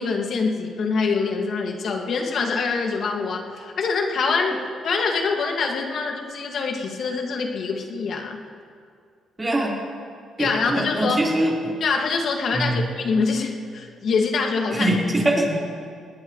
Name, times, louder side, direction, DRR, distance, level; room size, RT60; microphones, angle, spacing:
voice 1, 0.0-8.4 10.4-11.2 11.8-14.9, left 4 dB, 60° left, 2 dB, 2.1 m, -25 dB
voice 2, 9.4-9.7 10.4-11.8 12.5-12.9 14.7-15.8, right 1 dB, 20° right, -3 dB, 4.3 m, -23 dB
19.5 x 19.5 x 3.2 m, 2.2 s
cardioid pair, 90°, 0 cm